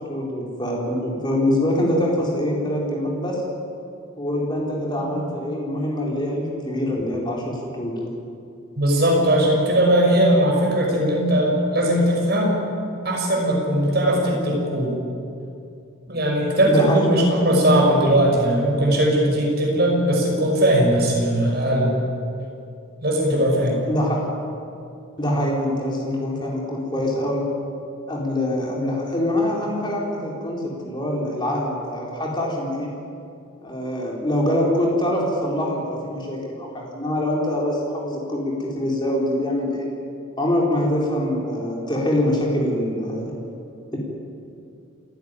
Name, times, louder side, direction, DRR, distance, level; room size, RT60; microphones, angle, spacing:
voice 1, 0.1-3.4 4.2-8.1 16.7-17.1 23.5-24.2 25.2-27.4 28.1-32.9 33.6-39.9 40.4-43.3, left 1 dB, 20° left, -2 dB, 4.4 m, -24 dB
voice 2, 8.8-12.6 13.0-14.9 16.1-21.9 23.0-23.8, right 1 dB, 45° right, -1 dB, 6.1 m, -19 dB
28.5 x 11.5 x 10.0 m, 2.6 s
head